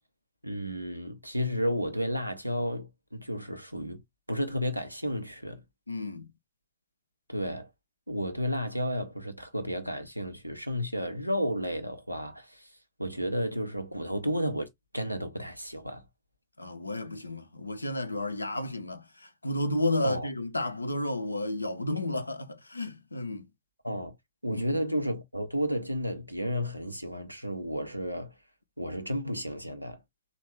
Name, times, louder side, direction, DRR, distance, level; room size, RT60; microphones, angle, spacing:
voice 1, 0.4-4.0 4.3-5.6 7.3-7.7 8.1-12.7 13.0-16.0 20.0-20.3 23.8-24.1 24.4-28.3 28.8-30.0, equal, 90° right, 0.5 m, -32 dB
voice 2, 5.9-6.3 16.6-23.4 24.5-24.6, left 1 dB, 85° left, 0.5 m, -32 dB
3.5 x 2.2 x 3.1 m
figure-of-eight pair, 90°, 0 cm